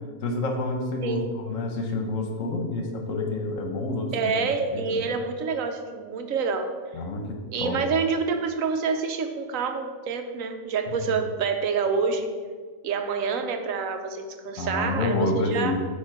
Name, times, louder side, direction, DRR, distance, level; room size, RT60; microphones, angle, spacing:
voice 1, 0.2-4.4 4.7-5.1 6.9-7.8 10.9-11.0 14.6-15.7, left 2 dB, 75° left, 3 dB, 1.2 m, -28 dB
voice 2, 4.1-6.7 7.5-12.3 12.8-15.7, right 5 dB, 85° right, 6 dB, 1.1 m, -27 dB
8.1 x 2.9 x 5.9 m, 1.5 s
omnidirectional pair, 1.4 m